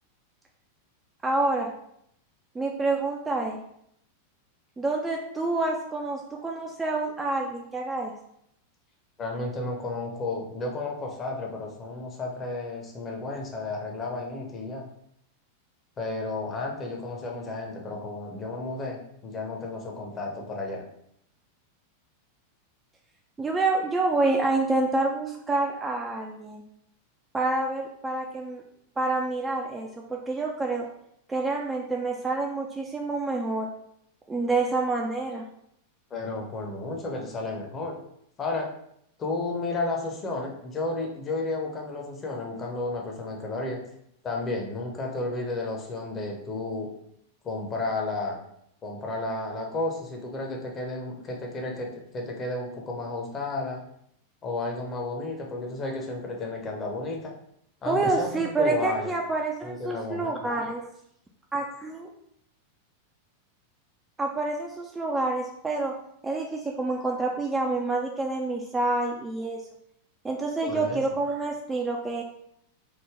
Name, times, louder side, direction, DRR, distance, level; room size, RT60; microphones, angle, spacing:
voice 1, 1.2-1.7 2.5-3.6 4.8-8.1 23.4-26.6 27.3-28.6 29.0-30.9 31.3-33.7 34.3-35.4 57.8-60.8 61.5-62.1 64.2-65.9 66.2-69.6 70.2-72.2, right 2 dB, 15° right, 0 dB, 0.3 m, -27 dB
voice 2, 9.2-14.9 16.0-20.8 36.1-38.0 38.4-38.7 39.2-43.8 44.2-46.9 47.4-48.4 48.8-51.9 52.1-53.8 54.4-57.3 57.8-59.1 59.6-60.3 70.6-71.0, left 2 dB, 25° left, 0 dB, 0.6 m, -32 dB
3.2 x 2.1 x 3.5 m, 0.73 s
figure-of-eight pair, 90°, 0 cm